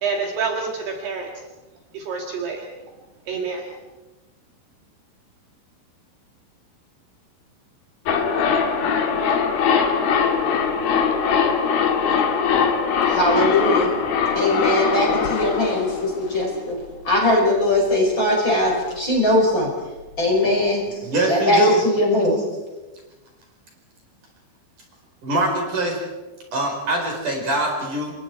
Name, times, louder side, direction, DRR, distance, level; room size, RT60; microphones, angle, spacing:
voice 1, 0.0-1.3 1.9-2.7 3.3-3.7, right 5 dB, 60° right, 1 dB, 3.7 m, -27 dB
sound 1, 8.1-16.9 17.1-17.2, left 6 dB, 60° left, 3.4 m, -21 dB
voice 2, 13.1-13.9 14.4-15.9 16.2-16.7 17.1-19.7 20.2-20.8 21.3-21.6 21.8-22.4, left 1 dB, 25° left, -1 dB, 5.8 m, -20 dB
voice 3, 20.9-21.8 25.2-26.0 26.5-28.1, right 2 dB, 40° right, 1 dB, 5.9 m, -23 dB
29.0 x 24.5 x 4.7 m, 1.1 s
omnidirectional pair, 5.6 m